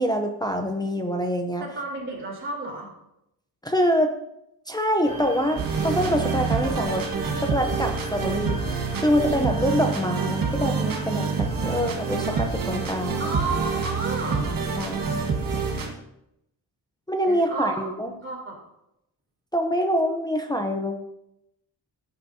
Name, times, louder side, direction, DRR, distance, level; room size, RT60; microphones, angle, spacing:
voice 1, 0.0-1.6 3.6-4.1 4.7-7.1 7.4-8.6 8.9-13.2 14.8-15.2 17.1-18.1 19.5-21.0, equal, 10° left, 3 dB, 0.6 m, -25 dB
voice 2, 1.6-2.9 13.2-14.4 17.2-18.6, right 3 dB, 30° right, -2 dB, 3.5 m, -32 dB
sound 1, 5.0-15.9, right 2 dB, 15° right, 4.7 m, -37 dB
sound 2, 5.6-15.9, right 5 dB, 50° right, 1.5 m, -27 dB
16.0 x 9.4 x 2.7 m, 0.81 s
wide cardioid pair, 170°, 42 cm